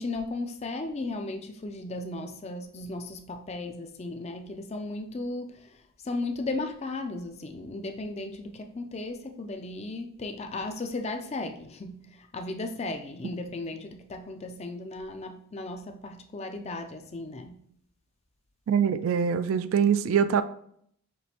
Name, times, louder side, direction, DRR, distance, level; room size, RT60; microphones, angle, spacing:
voice 1, 0.0-17.6, left 2 dB, 30° left, 0.4 m, -36 dB
voice 2, 18.7-20.4, right 7 dB, 65° right, 0.3 m, -24 dB
6.0 x 3.0 x 2.9 m
head